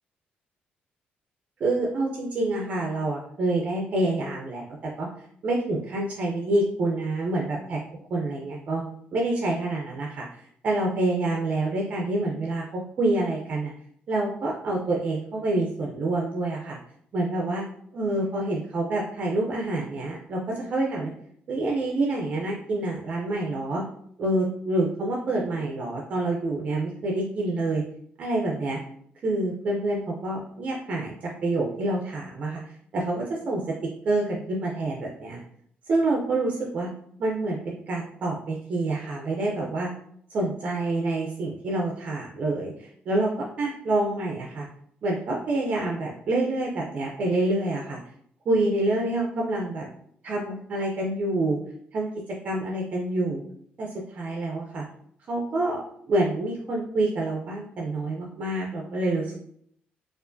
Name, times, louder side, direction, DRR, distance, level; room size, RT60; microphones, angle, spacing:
voice 1, 1.6-5.1 5.4-7.8 8.1-8.8 9.1-13.7 14.1-16.8 17.1-17.6 17.9-21.1 21.5-23.8 24.2-27.8 28.2-28.8 29.2-33.6 34.0-35.4 35.9-36.9 37.2-39.9 40.3-44.7 45.0-48.0 48.5-49.9 50.2-51.6 51.9-53.4 53.8-54.8 55.3-59.3, right 2 dB, 40° right, -1 dB, 0.4 m, -27 dB
4.5 x 2.4 x 2.5 m, 0.68 s
cardioid pair, 175°, 3 cm